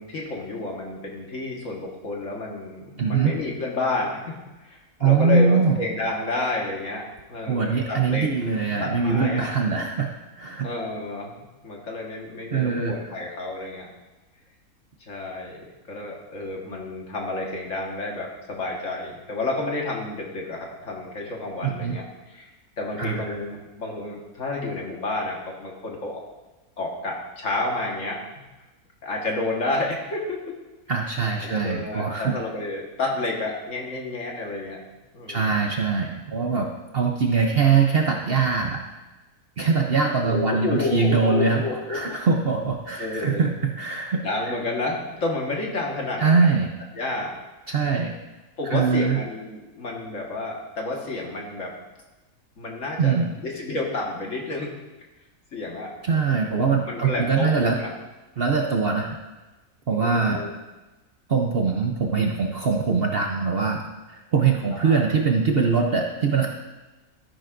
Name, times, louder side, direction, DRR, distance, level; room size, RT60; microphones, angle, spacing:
voice 1, 0.0-8.3 8.8-9.5 10.6-11.4 11.6-13.9 15.1-22.5 22.8-26.2 26.8-28.2 29.0-30.6 31.4-34.8 35.1-35.6 40.2-42.2 43.0-43.4 44.2-46.5 47.0-47.4 48.6-51.7 52.6-54.7 55.5-55.9 56.3-57.9 60.0-60.6 64.8-65.0, left 2 dB, 55° left, -1 dB, 1.9 m, -30 dB
voice 2, 3.0-3.3 5.0-5.8 7.5-10.1 10.4-10.7 12.5-12.9 21.6-22.0 23.0-23.4 30.9-32.3 35.3-36.7 36.9-38.8 39.6-41.6 41.9-44.5 46.2-46.7 47.7-48.1 48.7-49.2 53.0-53.3 56.0-57.8 58.4-59.2 59.9-60.4 61.3-63.8 64.1-66.5, right 5 dB, 50° right, 1 dB, 0.8 m, -22 dB
13.0 x 10.5 x 2.6 m, 1.1 s
omnidirectional pair, 1.6 m